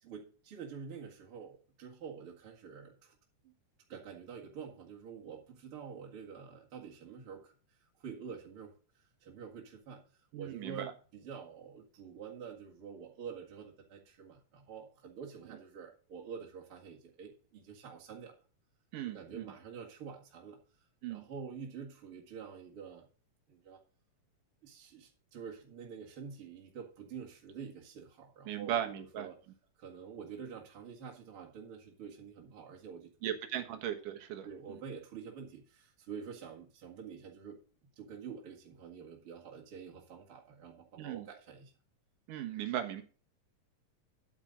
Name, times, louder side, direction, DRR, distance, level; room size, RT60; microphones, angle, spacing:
voice 1, 0.0-3.1 3.4-3.5 3.9-7.5 8.0-10.0 10.4-18.4 19.1-20.6 21.1-23.1 23.5-23.8 24.6-29.4 29.8-33.6 34.4-37.6 38.0-41.7, right 6 dB, 45° right, -3 dB, 2.5 m, -47 dB
voice 2, 10.3-10.9 18.9-19.5 21.0-21.2 28.5-29.3 33.2-34.8 41.0-41.3 42.3-43.0, right 11 dB, 75° right, 6 dB, 2.9 m, -37 dB
10.0 x 8.7 x 3.8 m, 0.37 s
omnidirectional pair, 3.8 m